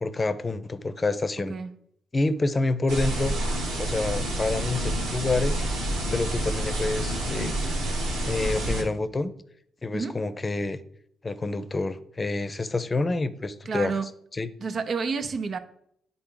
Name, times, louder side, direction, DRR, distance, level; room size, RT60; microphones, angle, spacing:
voice 1, 0.0-1.5 2.1-3.3 3.8-5.6 6.1-7.5 8.3-9.3 9.8-10.8 11.2-13.9 14.3-14.5, left 2 dB, 30° left, 13 dB, 0.7 m, -28 dB
sound 1, 2.9-8.8, right 1 dB, 90° right, 1.7 m, -28 dB
voice 2, 13.6-14.1 14.6-15.6, right 5 dB, 55° right, 9 dB, 0.8 m, -29 dB
9.8 x 3.9 x 3.9 m, 0.70 s
supercardioid pair, 55°, 0 cm